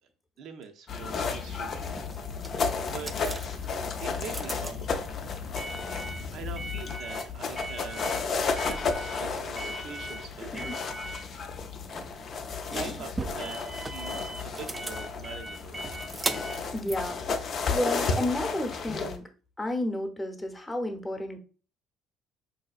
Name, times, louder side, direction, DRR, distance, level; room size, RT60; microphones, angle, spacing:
voice 1, 0.4-1.9 2.5-3.4 4.0-5.0 5.6-5.9 6.3-8.1 8.6-10.7 12.7-15.9, right 6 dB, 65° right, 5 dB, 0.5 m, -43 dB
sound 1, 0.9-19.2, left 4 dB, 50° left, 0.4 m, -33 dB
sound 2, 1.6-18.1, right 2 dB, 20° right, 0.3 m, -40 dB
voice 2, 10.4-10.8 12.7-13.0 16.7-19.2 19.6-21.4, left 1 dB, 15° left, 4 dB, 0.8 m, -32 dB
3.9 x 2.7 x 2.4 m, 0.38 s
supercardioid pair, 80°, 0 cm